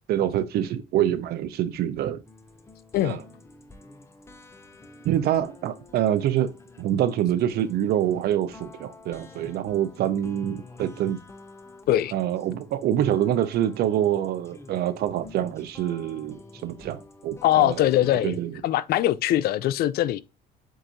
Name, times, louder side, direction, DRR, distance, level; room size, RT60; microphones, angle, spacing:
voice 1, 0.1-2.2 3.0-3.2 5.0-6.5 6.8-11.2 12.1-17.9 18.2-18.6, right 11 dB, 70° right, 0.7 m, -26 dB
sound 1, 2.2-18.4, left 3 dB, 15° left, 0.7 m, -49 dB
voice 2, 17.4-18.4 18.6-20.2, left 13 dB, 65° left, 0.4 m, -22 dB
7.5 x 2.6 x 2.6 m
cardioid pair, 110°, 17 cm